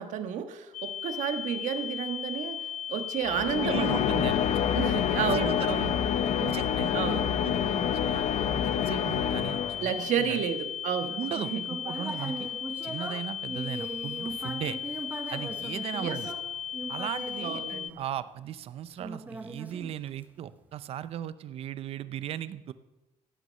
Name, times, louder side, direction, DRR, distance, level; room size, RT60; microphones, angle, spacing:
voice 1, 0.0-2.6 2.9-4.0 4.7-5.9 6.4-6.6 6.9-7.3 9.8-11.6 16.0-16.2 17.4-18.0, right 8 dB, 85° right, 8 dB, 1.5 m, -31 dB
Ear Ringing Sound Effect, 0.7-17.9, left 9 dB, 80° left, 0.4 m, -36 dB
sound 1, 3.2-10.1, left 9 dB, 60° left, 0.9 m, -28 dB
voice 2, 3.6-4.4 4.8-6.0 6.5-10.4 11.2-12.5 12.8-14.8 15.3-16.3 16.9-17.6 18.0-22.7, right 11 dB, 55° right, 15 dB, 0.6 m, -37 dB
Human voice, 11.0-18.4 19.0-20.4, right 2 dB, 15° right, 1.2 m, -40 dB
16.5 x 9.3 x 6.5 m, 1.0 s
cardioid pair, 180°, 12 cm